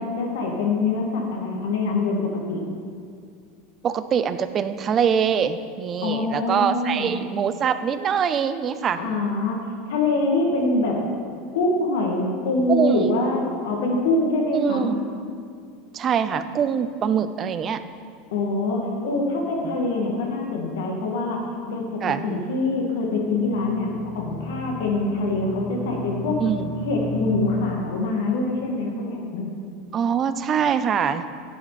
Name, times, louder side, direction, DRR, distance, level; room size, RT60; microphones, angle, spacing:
voice 1, 0.0-2.6 6.0-7.1 9.0-11.0 11.5-15.0 18.3-26.4 26.8-29.5, left 2 dB, 80° left, 0 dB, 2.1 m, -24 dB
voice 2, 3.8-9.0 12.7-13.1 14.5-15.0 15.9-17.8 19.6-19.8 22.0-22.3 26.4-26.7 29.9-31.2, right 7 dB, 25° right, 11 dB, 0.4 m, -23 dB
sound 1, 23.3-27.8, left 1 dB, 15° left, 1.2 m, -34 dB
10.5 x 9.4 x 4.2 m, 2.2 s
supercardioid pair, 170°, 0 cm